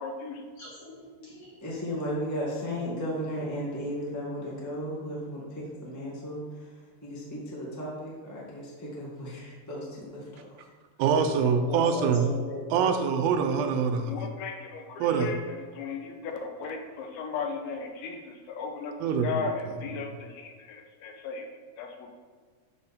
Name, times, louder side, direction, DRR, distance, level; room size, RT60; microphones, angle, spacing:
voice 1, 0.0-0.4 14.1-18.9 19.2-21.4 21.8-22.1, left 5 dB, 85° left, 3 dB, 2.8 m, -36 dB
voice 2, 0.6-1.6 10.2-10.3 11.4-12.9 13.6-13.7, left 1 dB, 45° left, -5 dB, 2.1 m, -38 dB
voice 3, 1.6-6.4 7.0-10.4, equal, 20° left, -6 dB, 0.4 m, -35 dB
voice 4, 11.0-12.3 12.7-14.3 15.0-15.3 19.0-19.5 19.9-20.0, right 6 dB, 80° right, 6 dB, 2.5 m, -25 dB
12.0 x 4.3 x 4.3 m, 1.5 s
omnidirectional pair, 4.3 m